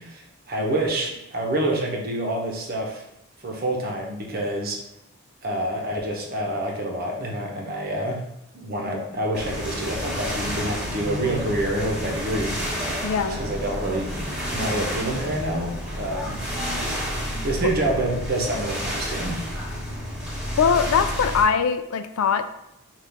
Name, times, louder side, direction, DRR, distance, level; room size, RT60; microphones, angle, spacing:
voice 1, 0.0-3.0 3.4-4.8 5.4-8.2 8.5-12.6 13.3-14.2 14.5-16.4 17.4-19.4, right 1 dB, 45° right, 0 dB, 0.8 m, -27 dB
sound 1, 9.3-21.4, equal, 5° right, 1.3 m, -30 dB
voice 2, 13.0-13.4 20.6-22.4, left 6 dB, 85° left, 10 dB, 0.4 m, -21 dB
5.5 x 2.4 x 3.4 m, 0.86 s
head